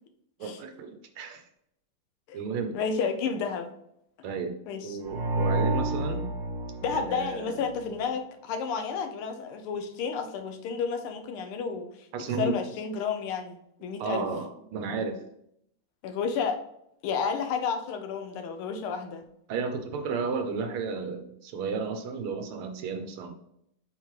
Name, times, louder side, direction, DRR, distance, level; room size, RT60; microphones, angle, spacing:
voice 1, 0.4-1.4 2.3-2.8 4.2-4.6 4.8-6.3 6.9-7.6 12.1-12.6 14.0-15.2 19.5-23.3, right 5 dB, 80° right, 6 dB, 1.7 m, -33 dB
voice 2, 2.3-3.7 4.7-5.0 6.8-11.9 12.4-14.2 16.0-16.6 17.0-19.2, left 6 dB, 85° left, 6 dB, 1.6 m, -31 dB
sound 1, 5.1-7.9, right 1 dB, 60° right, 1.2 m, -29 dB
8.1 x 3.7 x 3.2 m, 0.75 s
omnidirectional pair, 2.3 m